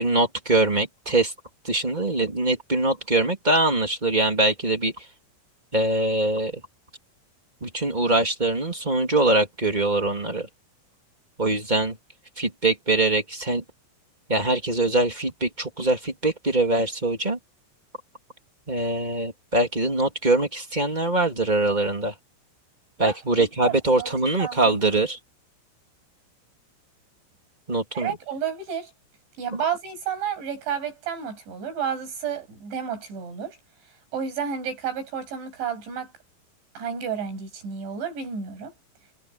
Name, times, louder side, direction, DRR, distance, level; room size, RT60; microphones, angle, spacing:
voice 1, 0.0-1.3 1.6-4.9 5.7-6.6 7.6-10.5 11.4-12.0 12.4-13.6 14.3-17.4 18.7-22.1 23.0-25.2 27.7-28.1, right 2 dB, 15° right, 1.6 m, -23 dB
voice 2, 23.0-24.1 24.4-24.8 27.9-28.9 29.4-33.6 34.1-36.1 36.7-38.7, right 7 dB, 60° right, 9.8 m, -31 dB
omnidirectional pair, 5.9 m